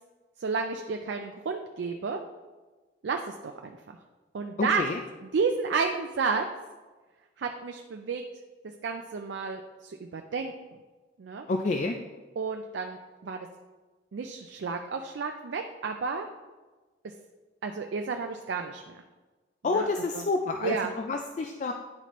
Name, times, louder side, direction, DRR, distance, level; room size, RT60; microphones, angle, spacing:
voice 1, 0.4-2.2 3.0-3.8 4.3-4.8 5.3-6.4 7.4-8.2 8.8-10.5 11.2-11.5 12.4-13.5 14.1-16.3 17.6-19.0 19.7-19.9 20.1-20.2 20.6-20.9, right 5 dB, 80° right, 4 dB, 0.4 m, -31 dB
voice 2, 4.6-5.0 11.5-12.0 19.6-21.7, left 3 dB, 40° left, 4 dB, 0.3 m, -29 dB
9.6 x 4.2 x 3.0 m, 1.3 s
head